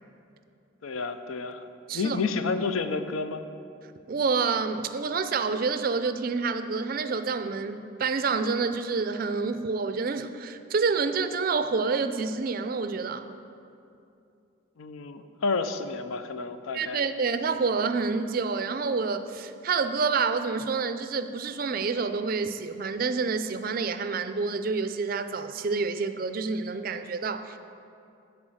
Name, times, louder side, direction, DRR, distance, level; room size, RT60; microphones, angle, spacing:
voice 1, 0.8-1.7 1.9-3.4 14.8-17.0, left 4 dB, 85° left, 10 dB, 0.5 m, -30 dB
voice 2, 1.9-2.2 4.1-13.3 16.7-27.6, right 4 dB, 45° right, 10 dB, 0.4 m, -28 dB
10.0 x 4.3 x 7.6 m, 2.6 s
head